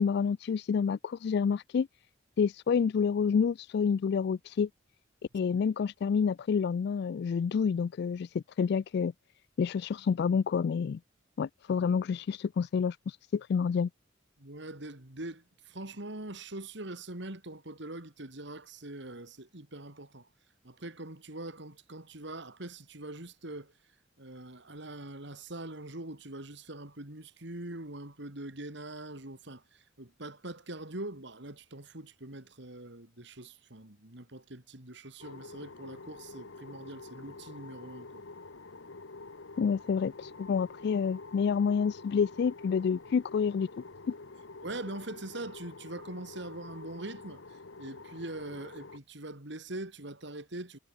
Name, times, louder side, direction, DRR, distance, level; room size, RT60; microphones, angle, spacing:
voice 1, 0.0-1.9 2.4-4.7 5.3-9.1 9.6-11.0 11.4-13.9 39.6-43.7, left 6 dB, 60° left, 0.3 m, -28 dB
voice 2, 14.4-20.3 20.6-23.7 24.2-38.2 44.6-50.8, right 2 dB, 65° right, 3.3 m, -43 dB
sound 1, 35.2-49.0, left 3 dB, 75° left, 1.3 m, -47 dB
head